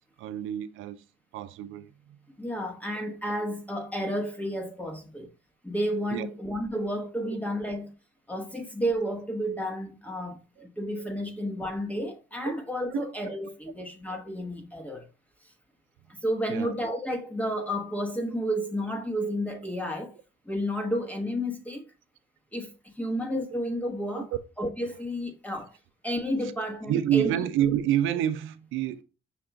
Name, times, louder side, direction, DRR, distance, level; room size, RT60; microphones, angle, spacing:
voice 1, 0.2-1.0 1.3-1.9 6.1-6.3 7.2-7.4 12.4-12.5 12.9-13.0 16.5-16.7 24.1-24.2 26.9-29.0, right 11 dB, 90° right, 0.4 m, -28 dB
voice 2, 2.4-5.3 5.6-7.9 8.3-15.1 16.1-20.2 20.5-21.8 22.5-24.3 24.6-25.7 26.0-27.3, equal, 5° left, 0.9 m, -31 dB
5.9 x 2.3 x 3.8 m
cardioid pair, 90°, 20 cm